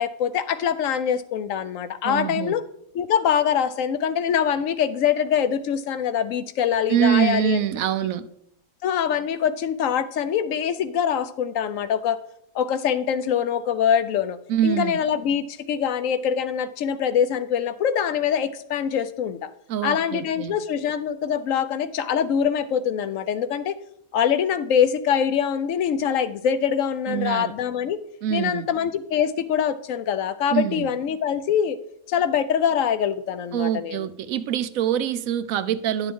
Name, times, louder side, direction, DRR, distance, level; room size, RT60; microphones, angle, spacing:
voice 1, 0.0-2.6 2.9-7.6 8.8-12.2 12.5-14.4 14.6-19.5 19.8-23.7 24.1-28.0 28.3-31.8 32.1-34.1, left 8 dB, 70° left, 12 dB, 0.9 m, -24 dB
voice 2, 2.0-2.6 6.9-8.3 14.5-15.0 19.7-20.6 27.1-27.5 28.2-28.7 30.5-30.9 33.5-36.1, right 10 dB, 75° right, 13 dB, 1.0 m, -24 dB
10.5 x 6.8 x 3.6 m, 0.73 s
omnidirectional pair, 1.5 m